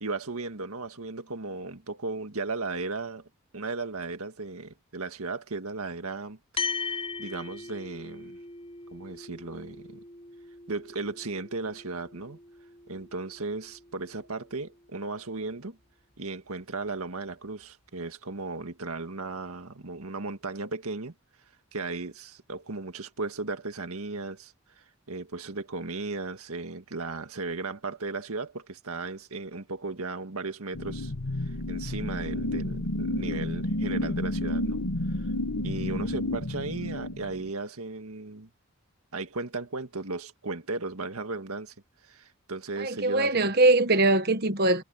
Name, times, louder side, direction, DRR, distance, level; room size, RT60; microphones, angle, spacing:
voice 1, 0.0-3.3 3.5-6.7 7.2-8.4 8.9-10.0 10.7-12.4 12.9-15.8 16.2-21.1 21.7-31.1 31.4-34.8 35.2-35.3 35.6-38.5 39.1-41.7 42.0-43.5, right 3 dB, 90° right, 1.9 m, -36 dB
sound 1, 6.6-15.2, left 4 dB, 25° left, 7.5 m, -40 dB
sound 2, 30.7-37.5, left 1 dB, 85° left, 1.7 m, -31 dB
voice 2, 42.8-44.8, right 2 dB, 45° right, 1.3 m, -22 dB
head